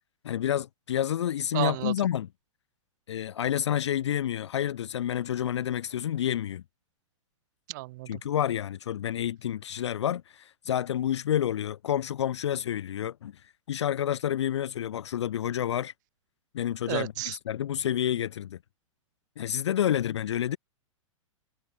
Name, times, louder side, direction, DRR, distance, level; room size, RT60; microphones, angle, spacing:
voice 1, 0.2-2.3 3.1-6.6 8.1-15.9 16.5-18.6 19.4-20.6, left 10 dB, 55° left, 0.4 m, -29 dB
voice 2, 1.5-1.9 7.7-8.2 16.9-17.4, right 20 dB, 35° right, 0.4 m, -32 dB
figure-of-eight pair, 105°, 17 cm